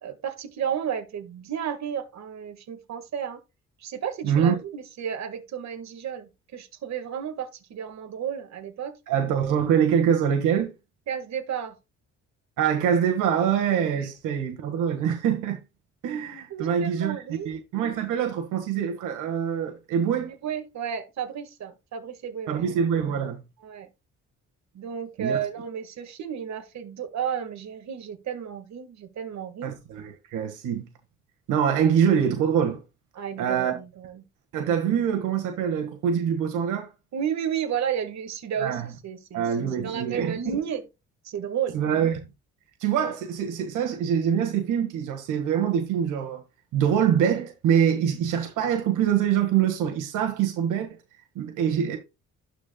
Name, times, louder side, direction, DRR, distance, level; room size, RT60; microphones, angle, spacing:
voice 1, 0.0-3.4 3.8-8.9 11.1-11.8 16.5-17.5 20.4-22.6 23.6-23.9 24.7-29.7 33.2-34.2 37.1-40.8 41.2-41.8, right 8 dB, 65° right, 1.7 m, -32 dB
voice 2, 4.2-4.6 9.1-10.7 12.6-15.6 16.0-20.3 22.5-23.4 25.2-25.4 29.6-30.9 31.5-32.8 33.4-33.8 34.5-36.9 38.6-38.9 39.3-40.6 41.7-42.3 42.8-46.4 46.7-51.0 51.4-52.0, right 8 dB, 90° right, 1.8 m, -24 dB
12.0 x 4.9 x 2.3 m
cardioid pair, 90°, 30 cm